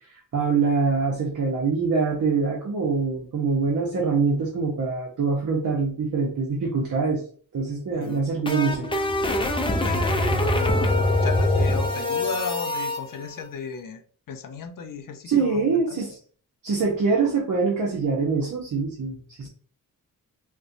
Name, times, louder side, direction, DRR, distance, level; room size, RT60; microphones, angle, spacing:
voice 1, 0.1-7.2 7.5-8.9 15.2-16.2 16.6-19.5, right 4 dB, 60° right, -1 dB, 0.8 m, -24 dB
sound 1, 8.0-13.0, left 1 dB, 15° left, 0.5 m, -23 dB
voice 2, 9.7-14.0 14.3-16.0, left 5 dB, 70° left, 6 dB, 0.6 m, -35 dB
4.2 x 2.2 x 2.6 m, 0.44 s
cardioid pair, 85°, 34 cm